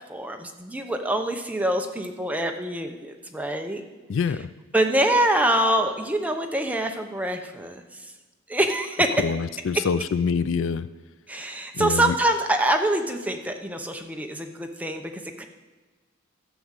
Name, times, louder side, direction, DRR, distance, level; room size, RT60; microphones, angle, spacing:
voice 1, 0.0-3.8 4.7-8.1 8.5-9.1 11.3-15.4, right 1 dB, 5° right, 4 dB, 0.8 m, -25 dB
voice 2, 4.1-4.5 9.2-10.9 11.7-12.1, left 5 dB, 65° left, 16 dB, 0.4 m, -25 dB
12.0 x 6.2 x 8.1 m, 1.3 s
head